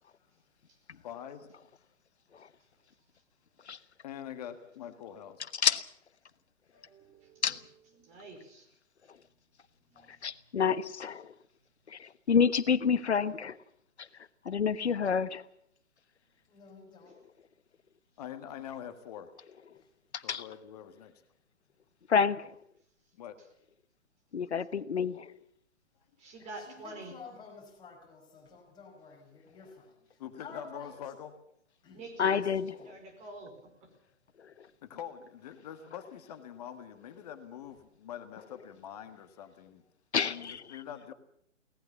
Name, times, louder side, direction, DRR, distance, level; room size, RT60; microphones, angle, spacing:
voice 1, 1.0-1.7 4.0-5.4 18.2-19.3 20.2-21.1 23.1-23.4 30.2-31.3 34.8-39.8 40.2-41.1, left 9 dB, 30° left, 9 dB, 1.8 m, -44 dB
voice 2, 5.5-5.9 7.4-7.6 10.2-11.3 11.9-13.6 14.4-15.4 20.1-20.4 22.1-22.6 24.3-25.3 32.2-32.7 34.4-34.5 40.1-40.6, left 6 dB, 60° left, 15 dB, 1.3 m, -28 dB
voice 3, 6.7-8.7 9.9-10.1 23.4-23.5 26.2-27.1 31.9-32.4 32.8-33.5, right 2 dB, 20° right, 4 dB, 4.8 m, -47 dB
voice 4, 16.5-17.2 19.7-19.9 26.5-31.0 31.8-32.0 32.3-33.0, left 5 dB, 10° left, 0 dB, 5.4 m, -51 dB
23.0 x 18.5 x 7.1 m, 0.71 s
figure-of-eight pair, 135°, 38 cm